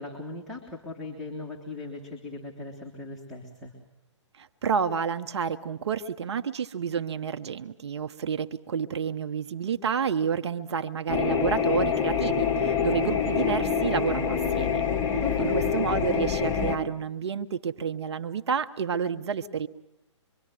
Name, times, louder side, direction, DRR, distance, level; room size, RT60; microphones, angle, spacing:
voice 1, 0.0-3.7 15.2-15.6, left 3 dB, ahead, -5 dB, 3.1 m, -39 dB
voice 2, 4.3-14.8 15.1-19.7, right 6 dB, 60° right, 8 dB, 1.0 m, -30 dB
sound 1, 11.1-16.8, left 6 dB, 20° left, 2.5 m, -26 dB
25.0 x 24.5 x 7.7 m, 0.82 s
figure-of-eight pair, 130°, 16 cm